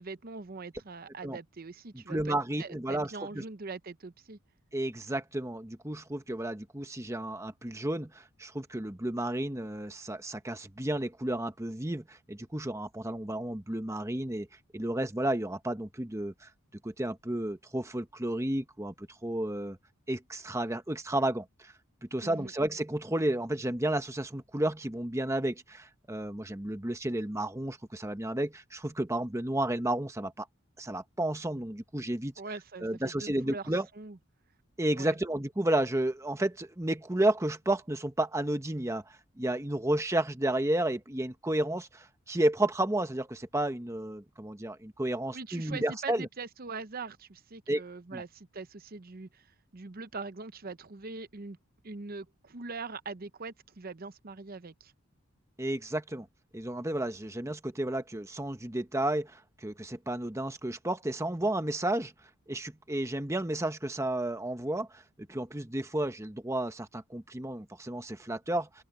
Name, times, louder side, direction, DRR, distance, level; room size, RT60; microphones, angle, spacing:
voice 1, 0.0-4.4 22.2-22.5 32.4-34.2 35.0-35.2 45.3-51.6 51.8-54.9, right 4 dB, 45° right, 0.8 m, -42 dB
voice 2, 2.1-3.4 4.7-14.5 14.7-16.5 16.8-19.8 20.1-21.7 22.0-30.5 30.8-32.3 32.8-33.9 34.8-46.3 47.7-47.8 48.1-48.2 55.6-56.3 56.5-62.1 62.5-65.0 65.3-68.8, right 1 dB, 15° right, 1.1 m, -32 dB
head